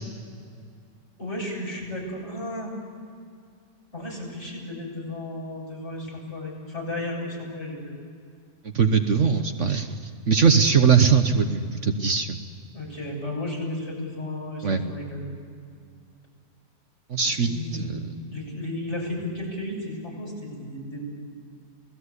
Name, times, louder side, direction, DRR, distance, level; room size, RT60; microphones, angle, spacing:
voice 1, 1.2-2.7 3.9-7.8 12.7-15.3 17.3-21.0, left 1 dB, 45° left, -2 dB, 7.9 m, -34 dB
voice 2, 8.7-9.9 10.3-12.4 14.6-14.8 17.1-18.1, right 6 dB, 55° right, 6 dB, 1.4 m, -21 dB
29.0 x 18.5 x 8.2 m, 2.4 s
omnidirectional pair, 1.6 m